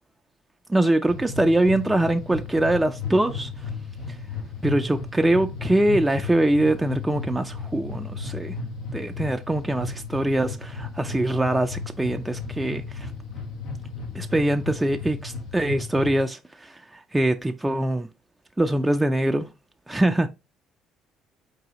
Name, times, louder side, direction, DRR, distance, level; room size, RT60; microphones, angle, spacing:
voice 1, 0.7-3.5 4.1-4.2 4.6-8.6 8.9-13.1 14.1-18.1 18.6-19.5 19.9-20.3, right 1 dB, 10° right, 0.4 m, -23 dB
sound 1, 1.1-16.2, left 4 dB, 65° left, 0.7 m, -34 dB
4.8 x 2.7 x 2.9 m
hypercardioid pair, 60°, 0 cm